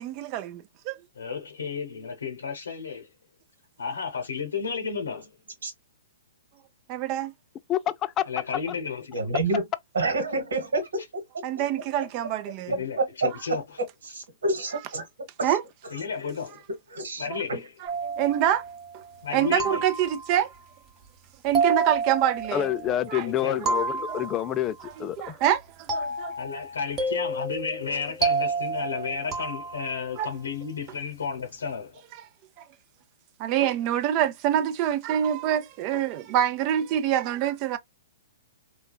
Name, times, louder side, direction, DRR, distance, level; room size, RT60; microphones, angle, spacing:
voice 1, 0.0-1.0 6.9-7.3 11.4-12.7 15.4-15.6 18.0-18.6 19.3-20.5 21.4-22.7 23.1-23.2 23.6-23.7 24.1-24.2 25.0-26.3 30.2-30.3 33.4-37.8, right 10 dB, 40° right, 0.5 m, -26 dB
voice 2, 1.1-3.1 3.8-5.3 8.3-9.3 12.7-13.6 15.9-16.6 17.2-17.7 19.2-19.8 23.2-23.6 26.4-32.0, left 5 dB, 85° left, 0.8 m, -33 dB
voice 3, 7.7-8.3 22.5-25.4, left 12 dB, 25° left, 0.3 m, -28 dB
voice 4, 9.1-9.6 9.9-11.2 13.0-13.1 14.0-15.0 15.4-15.5 16.9-17.2 17.5-17.6, right 2 dB, 75° right, 1.4 m, -28 dB
sound 1, 17.9-19.0 19.6-20.6 21.5-23.1 23.7-24.8 25.9-30.2, right 4 dB, 20° right, 0.9 m, -30 dB
3.2 x 2.3 x 2.2 m
hypercardioid pair, 125°, 0 cm